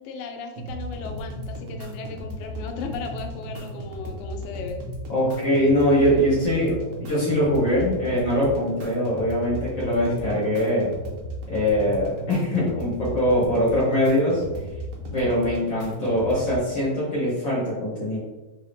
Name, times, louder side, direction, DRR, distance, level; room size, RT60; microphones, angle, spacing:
voice 1, 0.0-4.8, left 5 dB, 80° left, 4 dB, 2.2 m, -36 dB
sound 1, 0.6-16.6, equal, 75° right, 1.7 m, -35 dB
voice 2, 5.1-10.9 11.5-14.4 15.1-18.2, equal, 55° left, -8 dB, 1.3 m, -22 dB
5.4 x 2.7 x 3.3 m, 1.1 s
omnidirectional pair, 3.9 m